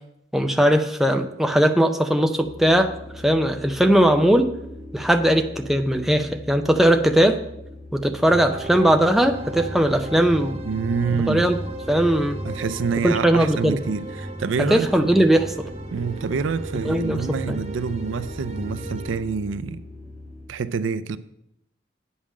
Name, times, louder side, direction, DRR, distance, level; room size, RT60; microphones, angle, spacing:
voice 1, 0.3-2.9 3.2-4.5 4.9-7.4 7.9-10.6 11.3-11.6 11.9-12.4 13.0-13.8 14.7-15.7 16.9-17.6, right 1 dB, ahead, 0.4 m, -19 dB
sound 1, 2.4-20.5, left 2 dB, 45° left, 3.1 m, -41 dB
sound 2, 8.3-19.2, right 1 dB, 35° right, 0.9 m, -35 dB
voice 2, 10.6-11.5 12.5-14.9 15.9-19.8 20.5-21.2, right 5 dB, 75° right, 0.4 m, -27 dB
8.4 x 5.5 x 6.2 m
head